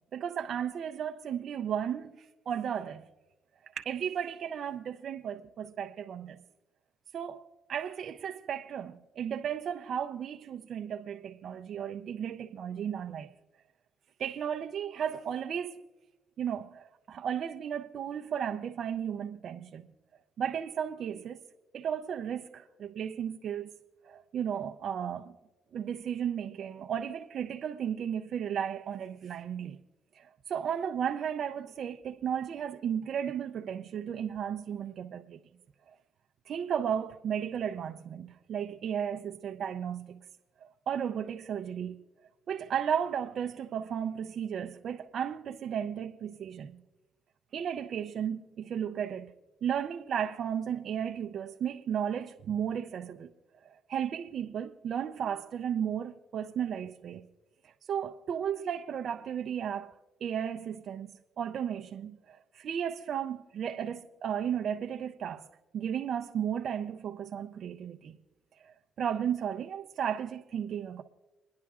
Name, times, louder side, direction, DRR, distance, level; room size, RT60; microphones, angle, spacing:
voice 1, 0.1-3.1 3.7-6.4 7.1-7.4 7.7-13.3 14.2-15.8 16.4-19.9 20.4-21.4 21.7-23.7 24.0-25.3 25.7-29.8 30.1-35.4 36.5-40.2 40.9-42.0 42.5-46.8 47.5-49.3 49.6-53.3 53.6-57.2 57.9-59.9 60.2-61.1 61.4-65.5 65.7-68.2 68.6-71.0, right 8 dB, 65° right, 0.5 m, -34 dB
29.0 x 10.5 x 2.4 m
cardioid pair, 90°, 0 cm